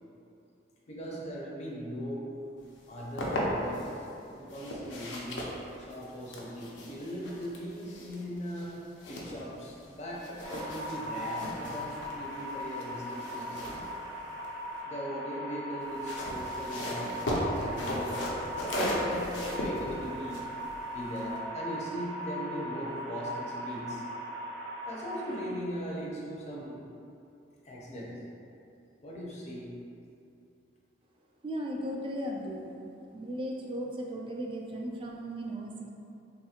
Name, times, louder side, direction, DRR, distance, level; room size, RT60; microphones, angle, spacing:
voice 1, 0.9-2.3 2.9-4.0 4.4-5.4 5.8-8.7 9.1-13.8 14.9-18.1 18.5-20.4 20.9-24.0 24.9-26.8 27.6-28.1 29.0-29.7, equal, 40° left, -4 dB, 0.5 m, -39 dB
sound 1, 2.8-3.9 4.5-9.9 10.2-14.8 15.8-21.4, equal, 80° left, 0.5 m, -36 dB
sound 2, 10.4-25.4, equal, 85° right, 0.6 m, -39 dB
voice 2, 31.4-32.7 33.1-35.9, equal, 30° right, 0 dB, 0.3 m, -36 dB
3.4 x 2.8 x 2.3 m, 2.7 s
head